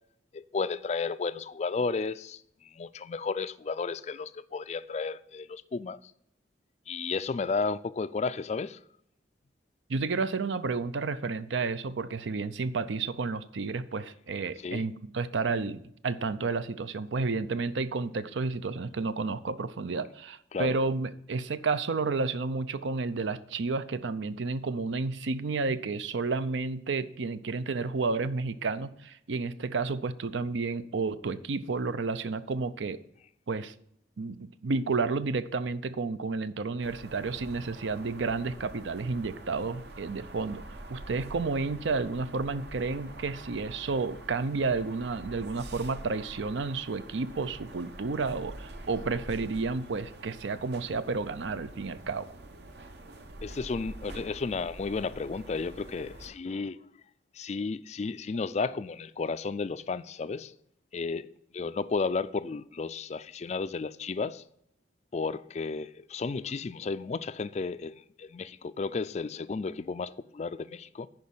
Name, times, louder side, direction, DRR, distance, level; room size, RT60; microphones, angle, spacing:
voice 1, 0.3-6.0 6.9-8.8 14.6-14.8 20.5-20.7 53.4-56.8 57.3-60.5 60.9-64.4 65.1-71.1, left 4 dB, 35° left, 0.3 m, -33 dB
voice 2, 9.9-33.0 33.5-33.7 34.2-52.3, right 4 dB, 80° right, 0.5 m, -31 dB
sound 1, 36.8-56.3, right 1 dB, 60° right, 0.9 m, -46 dB
10.5 x 5.1 x 5.5 m
head